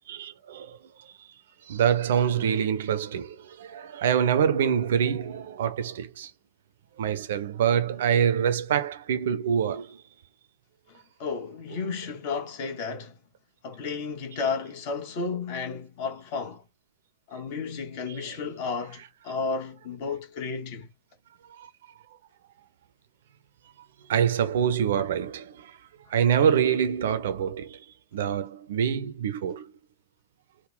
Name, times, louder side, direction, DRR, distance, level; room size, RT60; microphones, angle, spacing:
voice 1, 0.1-1.3 1.7-6.3 7.0-10.0 18.1-18.4 21.5-21.7 24.1-25.8 26.1-27.8 28.1-29.7, right 8 dB, 60° right, 0.4 m, -26 dB
voice 2, 11.2-13.1 13.6-16.6 17.3-20.9, left 5 dB, 45° left, 1.1 m, -32 dB
3.5 x 2.1 x 3.8 m
figure-of-eight pair, 90°, 0 cm